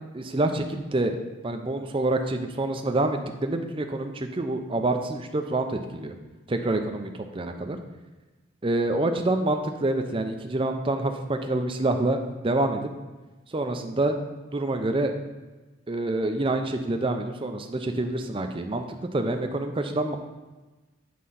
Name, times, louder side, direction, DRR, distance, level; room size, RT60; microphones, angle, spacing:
voice 1, 0.1-1.2 1.4-6.1 6.5-7.8 8.6-12.2 12.4-12.9 13.5-14.2 14.5-15.1 15.9-20.2, right 2 dB, 25° right, 6 dB, 0.5 m, -27 dB
7.7 x 3.7 x 5.5 m, 1.2 s
head